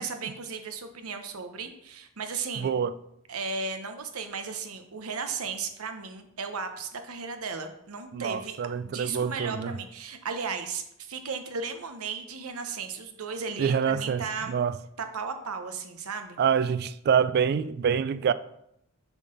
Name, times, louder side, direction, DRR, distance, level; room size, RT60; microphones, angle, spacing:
voice 1, 0.0-2.7 3.3-14.6 15.0-16.4, right 5 dB, 75° right, 0.8 m, -35 dB
voice 2, 2.6-2.9 8.1-9.8 13.6-14.8 16.4-18.3, right 7 dB, 45° right, 0.3 m, -26 dB
7.1 x 3.9 x 5.3 m
head